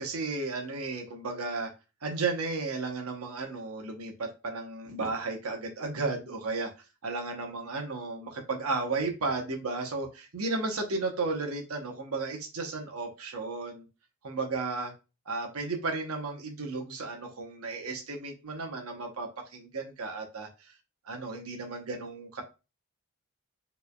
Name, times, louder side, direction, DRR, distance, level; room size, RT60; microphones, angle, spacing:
voice 1, 0.0-1.7 2.0-6.7 7.0-13.8 14.2-14.9 15.3-20.5 21.1-22.4, right 3 dB, 80° right, 3 dB, 0.9 m, -34 dB
4.5 x 3.3 x 2.2 m, 0.29 s
head